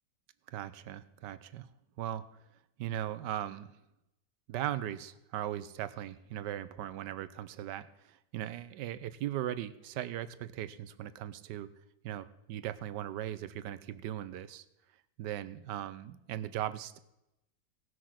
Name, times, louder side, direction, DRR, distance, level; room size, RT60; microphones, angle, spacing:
voice 1, 0.5-1.7 2.0-2.2 2.8-3.7 4.5-11.7 12.0-14.6 15.2-17.0, right 12 dB, 75° right, 14 dB, 1.3 m, -38 dB
17.5 x 6.3 x 5.8 m, 0.88 s
omnidirectional pair, 1.9 m